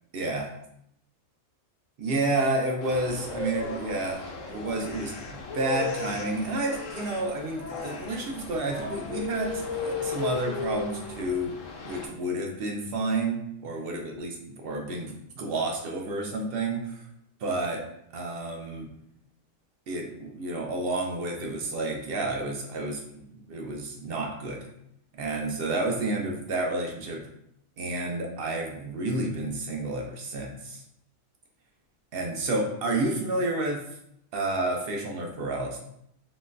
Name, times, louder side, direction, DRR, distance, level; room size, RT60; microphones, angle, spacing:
voice 1, 0.1-0.5 2.0-11.6 11.8-17.0 17.4-17.8 18.1-18.9 19.9-24.6 25.2-27.3 27.8-30.8 32.1-33.8 34.3-35.8, right 2 dB, 60° right, 1 dB, 0.6 m, -30 dB
sound 1, 2.8-12.1, left 4 dB, 85° left, 1.0 m, -35 dB
3.8 x 2.2 x 2.4 m, 0.75 s
omnidirectional pair, 1.3 m